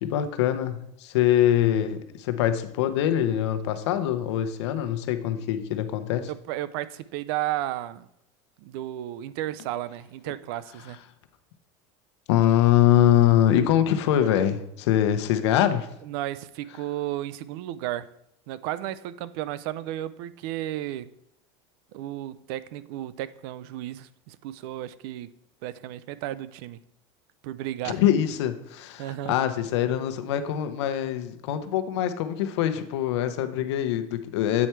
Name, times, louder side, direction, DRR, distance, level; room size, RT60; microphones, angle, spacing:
voice 1, 0.0-6.3 12.3-15.9 27.8-34.7, left 11 dB, 90° left, 0.8 m, -23 dB
voice 2, 6.3-8.1 8.6-11.0 16.0-18.1 18.5-21.1 21.9-25.3 25.6-26.8 27.4-28.0 29.0-29.4, right 13 dB, 65° right, 0.4 m, -33 dB
8.4 x 4.6 x 4.4 m
cardioid pair, 160°, 14 cm